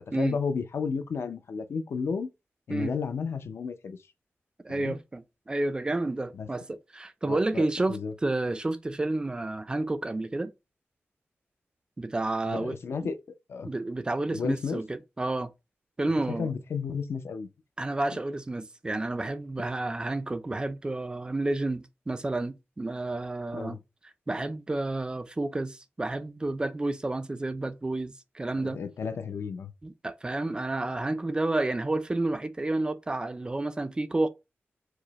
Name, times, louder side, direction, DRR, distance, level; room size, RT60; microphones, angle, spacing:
voice 1, 0.1-2.3 2.7-4.0 4.7-5.0 6.3-6.5 7.3-8.1 12.4-13.2 13.5-13.7 14.3-14.8 16.0-17.5 23.5-23.8 28.5-29.7, left 5 dB, 70° left, 0.4 m, -33 dB
voice 2, 4.6-10.5 12.0-12.8 13.0-13.1 13.6-15.5 16.0-16.5 17.8-23.8 24.3-28.8 29.8-34.3, right 2 dB, 20° right, 0.3 m, -30 dB
4.7 x 2.0 x 3.0 m
wide cardioid pair, 160°, 4 cm